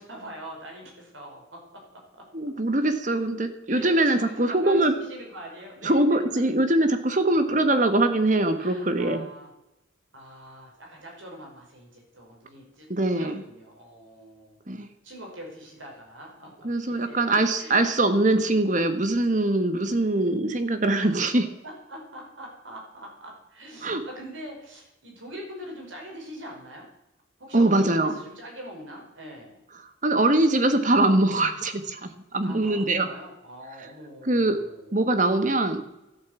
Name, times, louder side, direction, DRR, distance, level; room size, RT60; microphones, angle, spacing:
voice 1, 0.0-2.0 3.7-5.9 8.6-9.5 10.1-12.9 13.1-14.6 15.0-17.8 21.0-21.1 21.6-26.9 27.4-29.6 32.4-34.9, equal, 85° right, 0 dB, 5.7 m, -43 dB
voice 2, 2.3-4.9 5.8-9.2 12.9-13.4 14.7-14.9 16.6-21.4 23.8-24.0 27.5-28.1 30.0-33.1 34.2-34.6 34.9-35.8, right 2 dB, 40° right, 9 dB, 1.4 m, -22 dB
13.5 x 9.3 x 8.2 m, 0.92 s
head